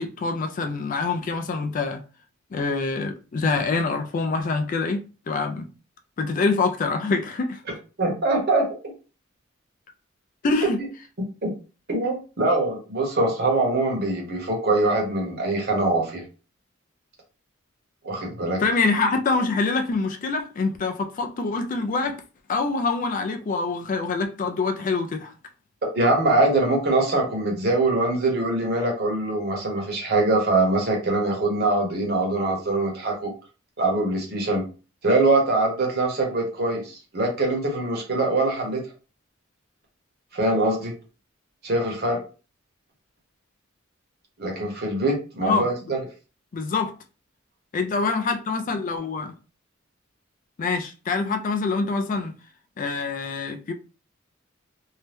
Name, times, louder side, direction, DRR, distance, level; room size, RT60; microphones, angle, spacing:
voice 1, 0.0-2.0 2.5-5.7 6.2-7.6 10.4-10.8 18.6-22.2 22.5-25.3 45.4-45.9 46.5-46.9 47.7-49.3 50.6-52.3 52.8-53.7, left 4 dB, 40° left, 0.3 m, -25 dB
voice 2, 8.0-8.7 11.4-11.5 11.9-16.2 18.0-18.6 25.9-33.3 33.8-34.6 35.0-38.8 40.3-40.9 41.6-42.2 44.4-46.0, right 2 dB, 50° right, 1.0 m, -23 dB
2.7 x 2.2 x 3.3 m
head